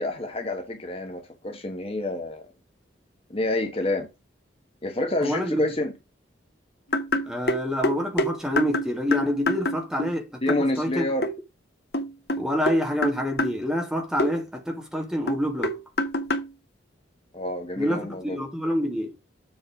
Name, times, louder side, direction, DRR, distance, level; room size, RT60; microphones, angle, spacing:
voice 1, 0.0-2.4 3.3-4.1 4.8-5.9 10.4-11.3 17.3-18.5, left 2 dB, 30° left, 1.3 m, -28 dB
voice 2, 5.2-5.7 7.2-11.0 12.4-15.8 17.8-19.1, equal, 5° right, 2.0 m, -27 dB
sound 1, 6.9-10.2 10.5-10.7 11.2-11.3 11.9-13.6 14.2-14.3 15.3-16.5, left 1 dB, 60° left, 1.2 m, -26 dB
7.4 x 4.7 x 4.9 m
head